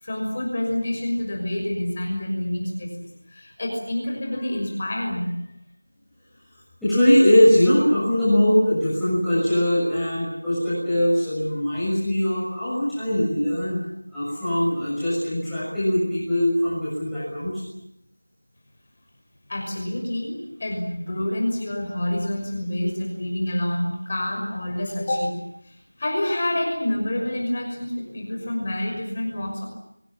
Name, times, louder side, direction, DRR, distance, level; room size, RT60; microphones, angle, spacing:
voice 1, 0.0-5.3 19.5-25.3 25.7-29.7, left 1 dB, 15° left, 1 dB, 6.1 m, -27 dB
voice 2, 6.8-13.8 14.1-17.6, left 1 dB, ahead, -15 dB, 6.9 m, -21 dB
28.5 x 25.0 x 7.3 m, 0.80 s
figure-of-eight pair, 180°, 0 cm